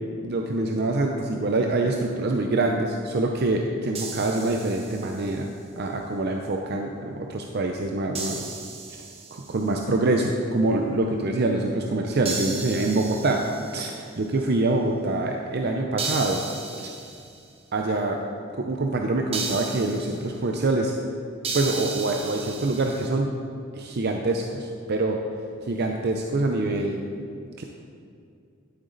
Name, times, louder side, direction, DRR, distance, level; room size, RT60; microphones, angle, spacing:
voice 1, 0.2-8.5 8.9-9.0 9.3-13.4 13.7-16.4 16.8-16.9 17.7-18.2 18.6-20.9 21.5-23.3 23.7-25.2 25.6-27.0 27.6-27.7, right 2 dB, 50° right, 2 dB, 0.6 m, -25 dB
sound 1, 3.9-5.4 8.1-9.7 12.2-14.1 16.0-17.4 19.3-20.3 21.4-23.1, right 4 dB, 30° right, 1.0 m, -35 dB
11.5 x 8.0 x 3.9 m, 2.4 s
head